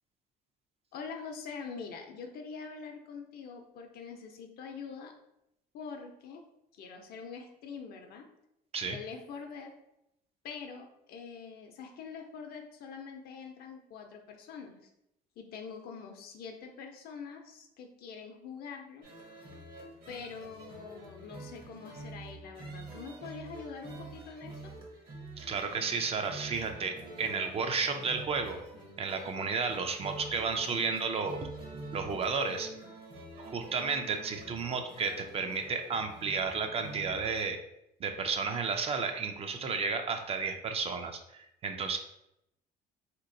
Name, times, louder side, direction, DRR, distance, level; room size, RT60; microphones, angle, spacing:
voice 1, 0.9-5.1 5.7-6.4 6.7-8.3 8.9-9.7 10.4-14.9 15.4-19.1 20.1-24.7, left 5 dB, 65° left, 4 dB, 0.6 m, -44 dB
sound 1, 19.0-37.4, right 2 dB, 60° right, 1.0 m, -47 dB
voice 2, 25.4-28.6 29.0-31.4 31.9-32.7 33.4-37.6 38.0-42.0, right 5 dB, 35° right, 6 dB, 0.4 m, -32 dB
3.4 x 2.9 x 2.6 m, 0.82 s
cardioid pair, 110°, 17 cm